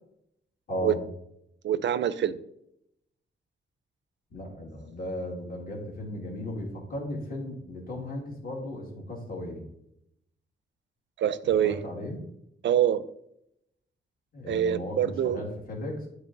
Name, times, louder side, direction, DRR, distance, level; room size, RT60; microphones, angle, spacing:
voice 1, 0.7-1.0 4.3-9.6 11.4-12.2 14.3-16.1, left 1 dB, 50° left, -2 dB, 1.9 m, -36 dB
voice 2, 1.6-2.4 11.2-11.8 12.6-13.0 14.5-15.4, right 10 dB, 70° right, 15 dB, 0.4 m, -25 dB
9.9 x 3.3 x 3.8 m, 0.78 s
wide cardioid pair, 155°, 20 cm